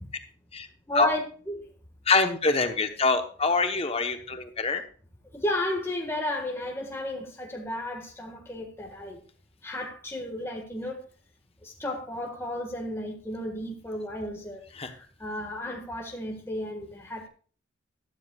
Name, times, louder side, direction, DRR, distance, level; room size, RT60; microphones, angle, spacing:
voice 1, 0.9-1.2 1.5-1.6 5.3-9.2 9.6-11.0 11.6-14.6 15.0-17.3, left 1 dB, 15° left, 1.6 m, -33 dB
voice 2, 2.1-4.8 14.7-14.9, left 3 dB, 30° left, 1.0 m, -25 dB
12.5 x 12.5 x 2.4 m
head